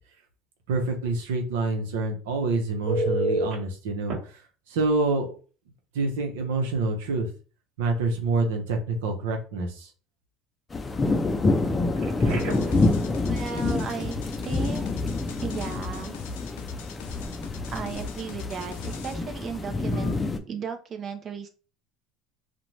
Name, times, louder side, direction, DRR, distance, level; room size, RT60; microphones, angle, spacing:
voice 1, 0.7-4.4 4.7-5.4 5.9-7.3 7.8-9.9, right 3 dB, 85° right, 4 dB, 0.7 m, -27 dB
Telephone, 2.9-3.5 4.1-4.2 6.0-6.1 6.5-6.7 12.0-12.8 19.9-20.1, right 1 dB, 60° right, 1.0 m, -29 dB
sound 1, 10.7-20.4, left 3 dB, 20° left, 0.4 m, -27 dB
sound 2, 12.3-19.1, left 5 dB, 85° left, 0.4 m, -40 dB
voice 2, 13.3-14.1 14.4-15.1 15.4-16.2 17.7-20.1 20.5-21.5, right 6 dB, 40° right, 5 dB, 0.4 m, -35 dB
2.5 x 2.1 x 3.0 m, 0.36 s
supercardioid pair, 100°, 0 cm